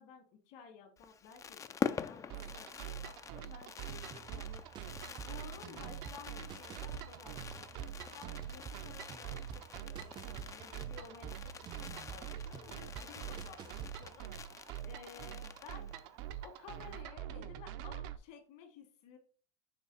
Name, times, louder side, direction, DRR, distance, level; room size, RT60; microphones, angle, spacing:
voice 1, 0.0-2.3 2.5-4.8 5.2-14.3 14.8-15.9 16.4-19.2, left 6 dB, 65° left, 3 dB, 2.3 m, -54 dB
Fireworks, 1.0-16.1 16.4-16.5 16.7-17.0, left 6 dB, 20° left, 0.4 m, -45 dB
sound 1, 2.3-18.2, right 11 dB, 65° right, 0.7 m, -46 dB
sound 2, 3.9-14.2, right 7 dB, 30° right, 0.6 m, -50 dB
6.6 x 3.4 x 4.9 m, 0.40 s
supercardioid pair, 115°, 15 cm